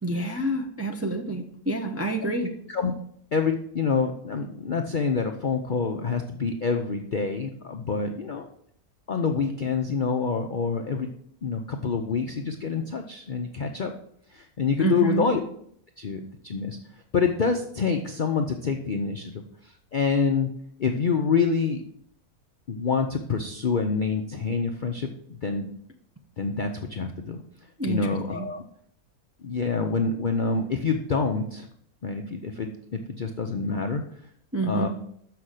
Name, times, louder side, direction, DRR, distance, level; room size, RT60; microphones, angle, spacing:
voice 1, 0.0-2.5 14.8-15.3 27.8-28.5 34.5-34.9, right 2 dB, 15° right, 2 dB, 0.5 m, -28 dB
voice 2, 3.3-8.5 9.1-11.1 11.4-13.9 14.3-15.4 16.0-16.8 17.1-20.5 20.8-21.8 22.7-25.7 26.4-27.4 27.8-28.6 29.4-31.7 32.0-34.0 34.6-34.9, left 5 dB, 50° left, 4 dB, 0.5 m, -27 dB
6.7 x 5.9 x 6.4 m, 0.67 s
omnidirectional pair, 1.6 m